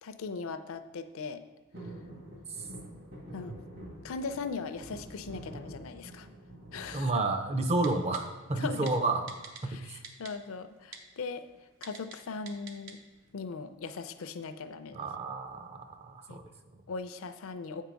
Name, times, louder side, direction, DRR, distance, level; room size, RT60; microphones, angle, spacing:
voice 1, 0.0-1.4 3.3-3.6 4.0-6.3 6.7-7.1 8.6-8.9 9.7-11.5 11.8-13.0 13.3-15.1 16.3-16.4 16.9-17.8, left 4 dB, 65° left, 10 dB, 0.4 m, -39 dB
sound 1, 1.7-7.9 8.3-8.9 10.2-10.6 10.9-11.0 11.3-11.6 12.4-13.3 13.8-13.9, right 1 dB, 50° right, 1.9 m, -47 dB
voice 2, 6.9-10.0 14.9-16.8, right 2 dB, 30° right, 6 dB, 0.5 m, -31 dB
Typing, 7.8-8.2 8.9-9.0 9.3-9.6 10.0-10.3 10.9-11.0 11.8-12.2 12.5-12.9 13.3-13.4, right 6 dB, 70° right, 0.8 m, -44 dB
7.5 x 4.6 x 5.1 m, 1.2 s
head